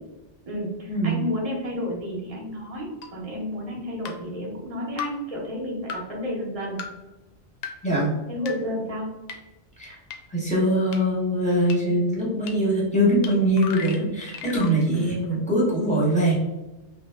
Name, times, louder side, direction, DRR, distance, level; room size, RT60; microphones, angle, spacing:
voice 1, 0.5-6.8 8.3-9.1 14.9-15.4, left 1 dB, 35° right, -2 dB, 0.8 m, -31 dB
sound 1, 3.0-3.1 4.0-4.2 5.0-5.1 5.9-6.0 6.8-6.9 7.6-7.7 8.5-8.6 9.3-9.4 10.1-10.2 10.9-11.0 11.7-11.8 12.5-12.6 13.2-13.3 13.6-14.7, left 7 dB, 65° left, 0.7 m, -34 dB
voice 2, 7.8-8.1 9.8-10.0 10.3-16.3, right 1 dB, 5° left, -6 dB, 1.0 m, -22 dB
3.3 x 2.1 x 3.4 m, 1.1 s
omnidirectional pair, 1.2 m